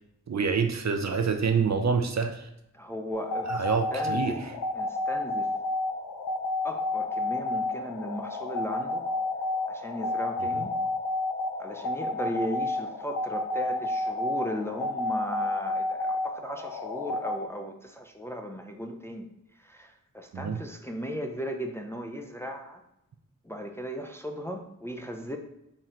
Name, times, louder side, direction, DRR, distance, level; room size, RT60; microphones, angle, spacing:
voice 1, 0.3-2.5 3.5-4.3 20.3-20.6, right 5 dB, 55° right, 6 dB, 0.6 m, -26 dB
voice 2, 2.7-3.7 3.9-4.4 4.7-5.5 6.6-9.0 9.7-10.7 11.6-19.3 19.6-22.8 23.4-25.4, equal, 10° left, 3 dB, 0.4 m, -36 dB
sound 1, 3.1-17.4, left 2 dB, 80° left, 0.6 m, -31 dB
4.4 x 3.2 x 3.7 m, 0.87 s
wide cardioid pair, 75°, 33 cm